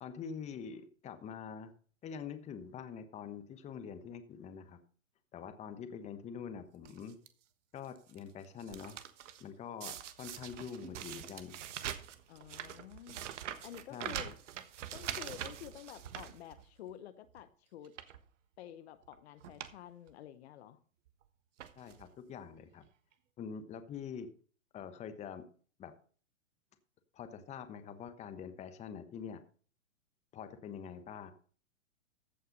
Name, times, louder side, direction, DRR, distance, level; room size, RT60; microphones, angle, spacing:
voice 1, 0.0-1.7 2.0-4.8 5.3-7.2 7.7-9.0 9.4-11.6 13.9-14.3 21.8-22.8 23.4-24.3 24.7-25.4 25.8-25.9 27.1-29.4 30.3-31.3, left 7 dB, 15° left, 1.1 m, -45 dB
sound 1, 6.8-7.3 7.8-8.2 8.4-9.4 9.8-16.9 17.3-17.4 17.8-18.2 19.0-19.1 19.4-19.8 20.1-20.2 21.1-21.2 21.6-22.1 22.8-22.9 23.1-23.2, right 10 dB, 65° right, 1.4 m, -44 dB
voice 2, 12.3-13.2 13.6-14.4 14.9-17.9 18.6-20.8, left 11 dB, 55° left, 0.9 m, -50 dB
15.0 x 5.7 x 5.3 m
hypercardioid pair, 135°, 40 cm